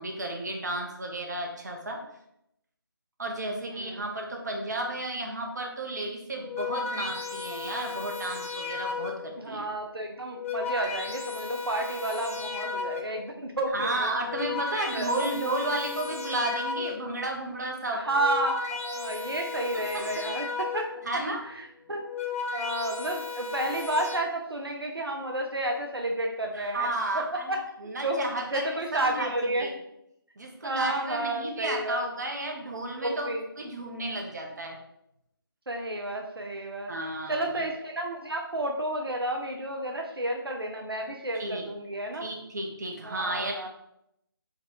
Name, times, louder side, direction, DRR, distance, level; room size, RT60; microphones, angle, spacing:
voice 1, 0.0-2.0 3.2-9.6 13.7-18.0 20.1-20.3 21.1-21.4 26.5-27.4 27.8-28.7 29.1-29.3 29.6-29.7 30.4-34.8 36.9-37.6 41.4-41.6 42.2-43.7, right 2 dB, 50° right, 1 dB, 0.8 m, -32 dB
voice 2, 3.7-4.0 9.4-14.1 14.9-15.3 17.9-22.0 22.5-26.9 27.1-27.6 28.0-28.2 28.5-29.8 30.6-32.0 33.0-33.4 35.7-36.9 37.3-42.3 43.0-43.7, right 1 dB, 80° right, 2 dB, 0.6 m, -31 dB
sound 1, 6.3-9.4 10.1-13.3 14.1-17.2 18.0-21.1 21.9-24.2, left 5 dB, 35° left, 0.5 m, -35 dB
4.1 x 2.3 x 3.8 m, 0.80 s
figure-of-eight pair, 155°, 12 cm